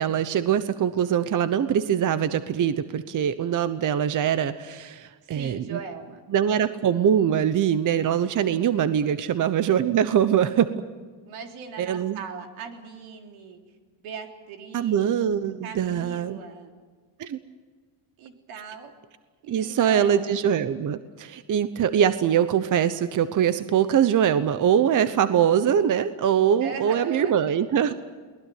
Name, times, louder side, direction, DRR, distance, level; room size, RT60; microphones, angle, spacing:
voice 1, 0.0-5.8 6.3-10.7 11.8-12.2 14.7-16.4 17.2-17.4 19.5-27.9, right 9 dB, 40° right, 12 dB, 1.0 m, -23 dB
voice 2, 5.2-6.2 11.3-13.6 14.0-15.2 15.6-16.7 18.2-18.9 19.4-20.3 26.6-27.4, right 5 dB, 80° right, 3 dB, 3.7 m, -39 dB
22.5 x 19.5 x 9.4 m, 1.5 s
cardioid pair, 120°, 48 cm